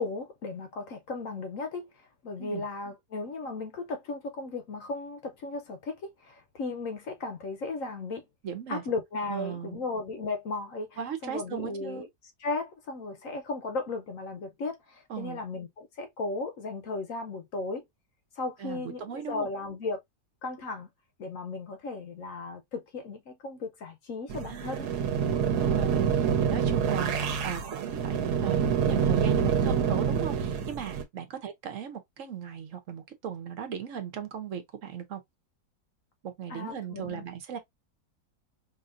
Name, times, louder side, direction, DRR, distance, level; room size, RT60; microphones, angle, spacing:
voice 1, 0.0-1.9 2.2-8.2 8.7-12.1 12.4-17.8 18.4-20.0 20.4-20.9 21.2-24.9 36.5-37.2, left 3 dB, 60° left, 1.0 m, -35 dB
voice 2, 8.4-8.8 9.3-9.8 11.0-12.1 15.1-15.4 18.6-19.5 24.5-25.0 25.4-35.2 36.2-37.6, right 8 dB, 55° right, 1.1 m, -37 dB
sound 1, 24.3-31.0, right 7 dB, 70° right, 1.3 m, -27 dB
4.9 x 2.7 x 2.5 m
omnidirectional pair, 1.8 m